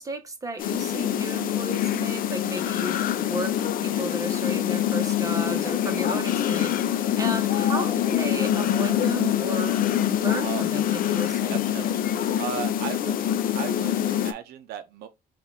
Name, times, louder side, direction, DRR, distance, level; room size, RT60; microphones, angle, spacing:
voice 1, 0.0-9.8 10.1-11.7, right 2 dB, 20° right, 1.0 m, -34 dB
sound 1, 0.6-14.3, left 10 dB, 55° left, 0.5 m, -25 dB
voice 2, 11.5-12.0 12.4-13.2 13.5-15.1, right 10 dB, 70° right, 0.5 m, -36 dB
4.1 x 2.4 x 3.4 m
cardioid pair, 110°, 17 cm